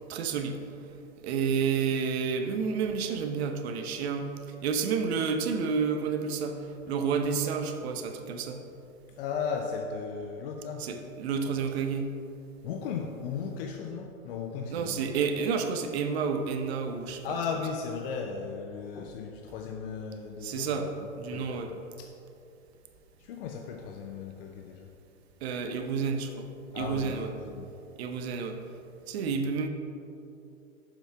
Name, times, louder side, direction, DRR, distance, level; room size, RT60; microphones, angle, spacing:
voice 1, 0.1-0.6 1.2-4.3 4.6-8.6 10.8-12.1 14.7-17.2 20.4-20.9 21.2-21.7 25.4-26.5 26.8-27.3 28.0-28.6 29.1-29.7, right 6 dB, 50° right, 6 dB, 0.9 m, -30 dB
voice 2, 9.1-10.9 12.6-15.1 17.2-22.1 23.2-24.9 26.7-27.7, left 5 dB, 45° left, 3 dB, 0.6 m, -36 dB
7.2 x 5.6 x 4.5 m, 2.7 s
hypercardioid pair, 120°, 41 cm